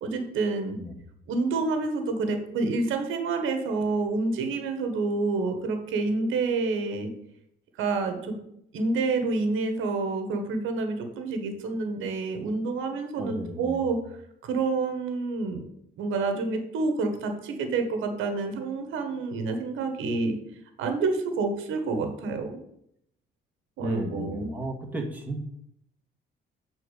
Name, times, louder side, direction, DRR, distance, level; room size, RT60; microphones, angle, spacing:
voice 1, 0.0-0.8 1.3-7.1 7.8-8.4 8.7-14.0 14.4-15.6 16.0-20.4 20.8-22.6 23.8-24.5, right 3 dB, 90° right, 6 dB, 1.4 m, -28 dB
voice 2, 13.2-13.8 23.8-25.4, right 1 dB, 10° right, 0 dB, 1.9 m, -34 dB
8.2 x 4.1 x 6.6 m, 0.75 s
cardioid pair, 90°, 20 cm